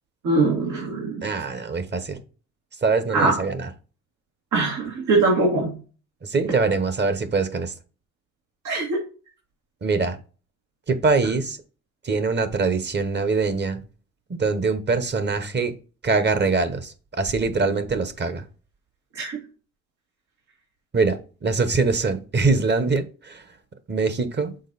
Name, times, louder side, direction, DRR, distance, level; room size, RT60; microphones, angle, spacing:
voice 1, 0.2-1.3 3.1-3.3 4.5-5.7 8.6-9.0 19.1-19.4, right 3 dB, 80° right, 2.3 m, -22 dB
voice 2, 1.2-2.2 2.8-3.7 6.2-7.7 9.8-10.2 10.9-11.6 12.0-13.8 14.3-15.7 16.0-18.4 20.9-23.4 23.9-24.5, right 4 dB, 35° right, 1.1 m, -23 dB
6.5 x 4.5 x 4.1 m
cardioid pair, 90°, 30 cm